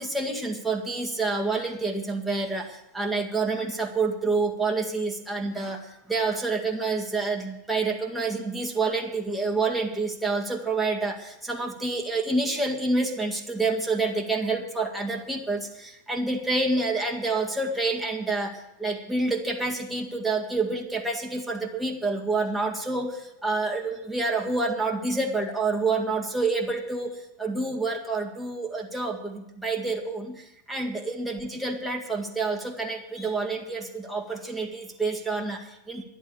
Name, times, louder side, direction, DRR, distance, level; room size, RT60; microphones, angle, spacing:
voice 1, 0.0-18.5 18.8-36.0, right 3 dB, 5° right, 0 dB, 1.9 m, -28 dB
11.0 x 11.0 x 8.1 m, 0.88 s
figure-of-eight pair, 90°, 0 cm